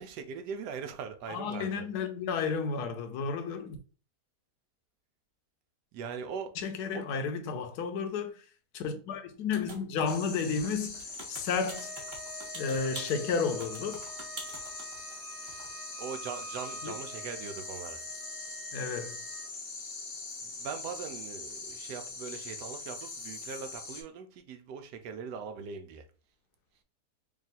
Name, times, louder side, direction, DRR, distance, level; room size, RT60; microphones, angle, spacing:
voice 1, 0.0-1.9 5.9-6.5 6.9-7.1 16.0-18.0 20.4-26.1, right 6 dB, 85° right, 1.2 m, -41 dB
voice 2, 1.3-3.8 6.6-8.4 8.7-11.9 12.5-14.0 16.8-16.9 18.7-19.2, left 5 dB, 75° left, 1.2 m, -32 dB
sound 1, 9.5-10.3 10.6-15.2 15.5-15.7, right 2 dB, 35° right, 1.0 m, -46 dB
sound 2, 10.1-24.0, left 3 dB, 55° left, 0.7 m, -42 dB
Wind instrument woodwind instrument, 11.6-19.5, right 3 dB, 65° right, 1.3 m, -48 dB
3.5 x 2.4 x 4.0 m
omnidirectional pair, 1.8 m